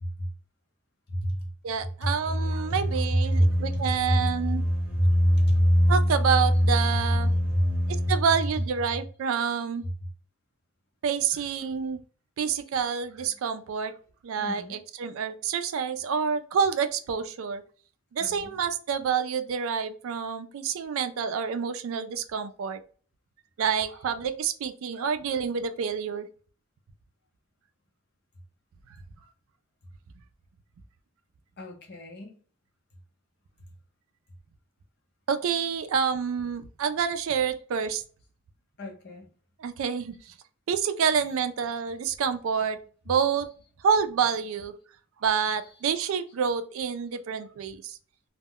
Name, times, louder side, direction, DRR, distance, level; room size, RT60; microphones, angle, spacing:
voice 1, 1.1-1.5 2.0-2.1 3.1-4.3 4.9-5.6 7.1-7.8 8.0-8.1 9.8-9.9 14.4-14.8 18.2-18.6 31.6-32.4 38.8-39.3, equal, 50° left, 2 dB, 0.7 m, -30 dB
voice 2, 1.6-4.6 5.9-7.3 8.1-9.8 11.0-12.0 12.4-13.9 14.2-17.6 18.1-22.8 23.6-26.3 35.3-38.0 39.6-40.3 40.7-42.8 43.1-43.5 43.8-44.7 45.2-48.0, right 6 dB, 70° right, 10 dB, 0.3 m, -28 dB
sound 1, 2.2-8.2, equal, 5° right, 0.8 m, -24 dB
2.1 x 2.1 x 3.6 m, 0.41 s
head